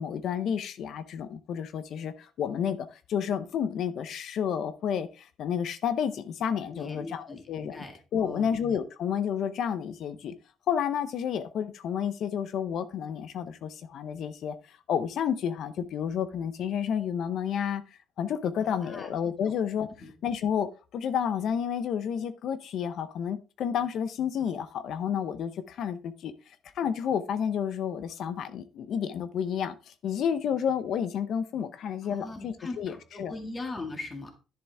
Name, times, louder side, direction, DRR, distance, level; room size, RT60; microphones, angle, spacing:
voice 1, 0.0-7.8 8.1-10.3 10.7-17.8 18.2-19.9 20.2-33.3, left 8 dB, 60° left, 0.7 m, -30 dB
voice 2, 6.7-7.4 7.7-8.6 18.6-19.1 20.0-20.1 32.0-34.3, left 2 dB, 20° left, 2.0 m, -40 dB
10.5 x 6.8 x 3.5 m
cardioid pair, 155°, 0 cm